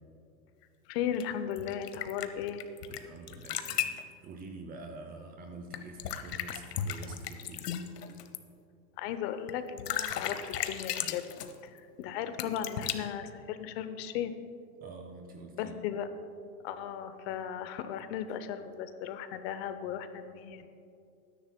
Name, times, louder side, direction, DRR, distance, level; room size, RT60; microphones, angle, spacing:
voice 1, 0.9-2.6 9.0-11.2 11.6-14.3 15.6-16.1 16.6-20.7, left 9 dB, 40° left, 10 dB, 0.7 m, -36 dB
sound 1, 1.2-3.0 3.3-4.0 5.7-8.4 9.5-9.6 9.8-11.6 12.4-12.9, left 10 dB, 80° left, 1.0 m, -35 dB
voice 2, 2.9-7.7 14.8-15.8, right 3 dB, 20° right, 5 dB, 0.5 m, -46 dB
20.0 x 10.0 x 2.2 m, 2.6 s
hypercardioid pair, 130°, 47 cm